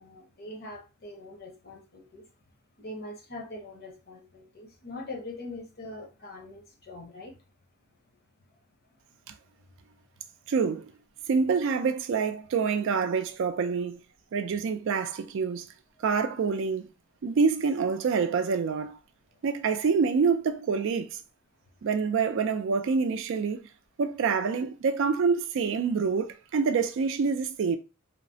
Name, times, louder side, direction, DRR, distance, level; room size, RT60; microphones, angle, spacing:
voice 1, 0.0-2.2 2.8-7.3, left 2 dB, 50° left, 0.8 m, -42 dB
voice 2, 10.5-10.9 11.3-14.0 14.3-15.7 16.0-16.9 17.2-19.0 19.4-21.2 21.8-23.6 24.0-27.8, right 5 dB, 65° right, 0.4 m, -26 dB
3.1 x 2.0 x 2.6 m
head